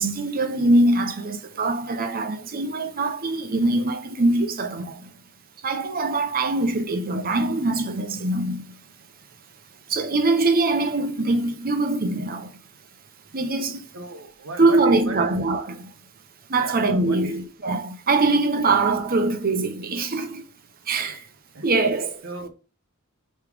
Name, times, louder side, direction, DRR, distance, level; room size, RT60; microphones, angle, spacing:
voice 1, 0.0-5.1 5.6-8.7 9.9-12.6 13.3-13.9 14.6-15.9 16.5-20.5 20.9-21.3 21.6-22.3, right 2 dB, 45° right, 0.9 m, -23 dB
voice 2, 13.9-15.3 16.6-17.4 18.6-18.7 21.0-21.2 21.5-22.0 22.2-22.5, right 2 dB, 70° right, 1.3 m, -37 dB
8.3 x 3.3 x 5.0 m
head